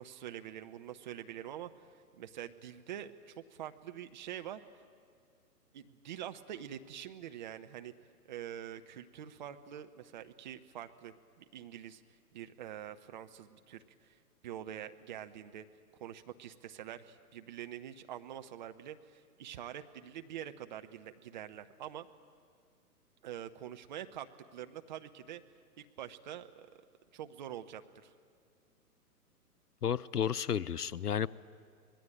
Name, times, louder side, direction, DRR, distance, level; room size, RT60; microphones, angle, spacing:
voice 1, 0.0-1.9 2.1-4.6 5.7-7.9 8.3-12.0 12.3-14.1 14.4-15.7 16.0-22.1 23.2-25.4 25.8-26.7 27.1-28.1, right 10 dB, 30° right, 8 dB, 0.8 m, -45 dB
voice 2, 29.8-31.3, left 8 dB, 75° left, 20 dB, 0.7 m, -32 dB
25.5 x 20.0 x 9.2 m, 2.2 s
figure-of-eight pair, 120°, 48 cm